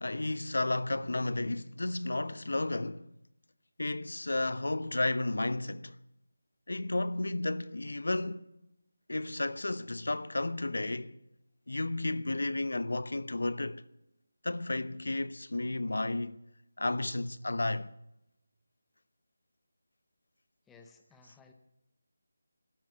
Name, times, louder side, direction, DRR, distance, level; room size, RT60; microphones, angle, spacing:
voice 1, 0.0-3.1 3.8-6.0 6.7-8.5 9.1-11.2 11.7-13.8 14.4-16.4 16.8-17.9, left 2 dB, 75° left, 0.9 m, -32 dB
voice 2, 20.7-21.5, left 4 dB, 5° left, 0.6 m, -57 dB
12.5 x 12.5 x 9.2 m
figure-of-eight pair, 180°, 0 cm